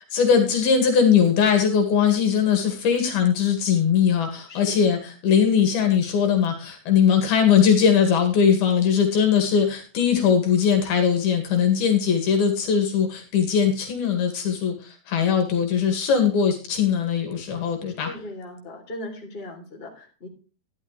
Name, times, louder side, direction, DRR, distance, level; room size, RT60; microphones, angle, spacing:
voice 1, 0.1-18.1, left 7 dB, 65° left, 4 dB, 3.7 m, -20 dB
voice 2, 4.5-5.0 18.0-20.3, left 1 dB, 15° left, 0 dB, 2.9 m, -38 dB
13.0 x 11.0 x 3.2 m, 0.36 s
omnidirectional pair, 4.9 m